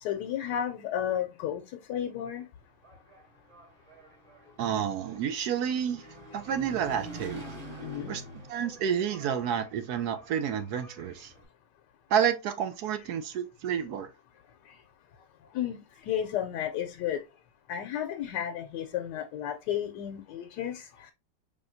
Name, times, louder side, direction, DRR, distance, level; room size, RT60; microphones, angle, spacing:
voice 1, 0.0-1.6 1.9-2.4 5.4-5.5 7.8-8.1 15.5-15.8 16.1-17.2 17.7-21.1, left 10 dB, 75° left, 1.2 m, -32 dB
Engine, 2.6-11.5, right 1 dB, 30° right, 1.6 m, -46 dB
voice 2, 4.6-6.0 6.3-7.4 8.1-8.2 8.5-11.3 12.1-14.1, right 8 dB, 70° right, 1.0 m, -30 dB
5.1 x 3.4 x 2.6 m
omnidirectional pair, 1.9 m